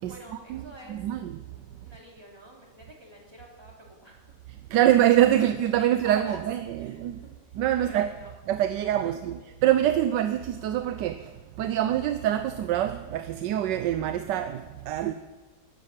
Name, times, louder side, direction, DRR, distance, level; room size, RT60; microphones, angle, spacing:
voice 1, 0.0-1.0 1.8-4.4 5.4-6.4 6.8-8.3 9.0-9.4, right 1 dB, 15° right, 3.4 m, -48 dB
voice 2, 0.9-1.4 4.7-7.2 7.6-8.1 8.5-11.2 11.6-15.1, right 12 dB, 85° right, 1.3 m, -25 dB
12.5 x 11.5 x 7.4 m
omnidirectional pair, 1.9 m